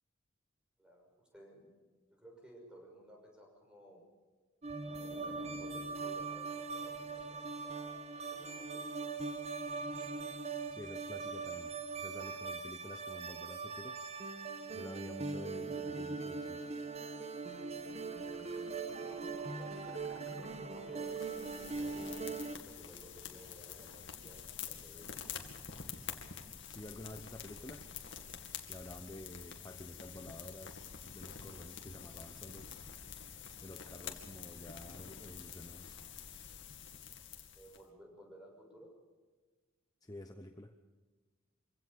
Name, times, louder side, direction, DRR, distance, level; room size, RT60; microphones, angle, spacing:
voice 1, 0.8-1.7 2.1-4.0 4.7-9.0 12.4-12.5 18.5-25.4 37.5-38.9, equal, 5° right, 0 dB, 6.2 m, -57 dB
sound 1, 4.6-22.6, right 4 dB, 30° right, 1.3 m, -41 dB
voice 2, 10.7-14.0 14.7-16.7 26.7-27.9 28.7-32.9 33.6-36.0 40.0-40.7, left 1 dB, 20° left, 6 dB, 0.8 m, -50 dB
sound 2, 17.4-24.4 24.8-24.9, left 2 dB, 90° left, 2.3 m, -59 dB
sound 3, 21.0-37.8, left 7 dB, 60° left, 2.3 m, -48 dB
25.5 x 17.0 x 6.8 m, 1.3 s
head